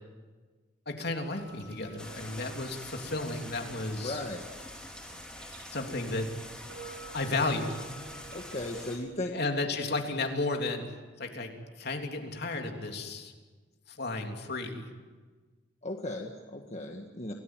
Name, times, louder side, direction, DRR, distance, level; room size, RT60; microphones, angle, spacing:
voice 1, 0.9-4.2 5.1-5.2 5.7-6.3 7.1-7.8 9.3-10.8 11.2-13.3 13.9-14.9, left 2 dB, 60° left, 3 dB, 3.3 m, -33 dB
sound 1, 1.3-8.7, right 2 dB, 80° right, 7.1 m, -51 dB
sound 2, 2.0-9.0, left 1 dB, 5° left, 4.4 m, -45 dB
voice 2, 4.0-4.5 8.3-9.4 15.8-17.3, left 1 dB, 40° left, 2 dB, 1.8 m, -36 dB
28.5 x 18.5 x 9.2 m, 1.4 s
head